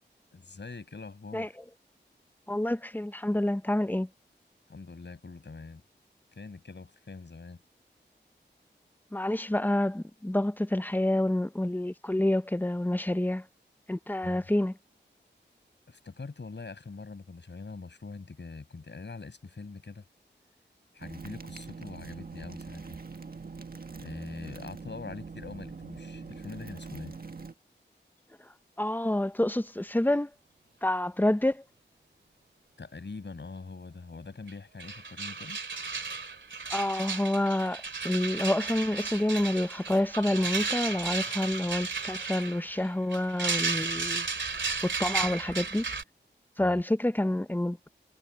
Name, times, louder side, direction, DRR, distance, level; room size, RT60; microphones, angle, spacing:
voice 1, 0.3-1.6 4.7-5.8 6.3-7.6 14.2-14.4 15.9-20.0 20.9-23.0 23.9-27.1 32.8-35.6 46.6-46.8, left 4 dB, 70° left, 6.1 m, -43 dB
voice 2, 2.5-4.1 9.1-13.5 13.9-14.7 28.8-30.3 30.8-31.6 36.7-44.3 44.8-45.9 46.6-47.9, left 1 dB, 10° left, 0.8 m, -28 dB
sound 1, 21.0-27.5, right 4 dB, 50° right, 1.6 m, -43 dB
sound 2, 34.5-34.6 34.8-46.0, right 4 dB, 85° right, 2.5 m, -34 dB
wide cardioid pair, 55°, 19 cm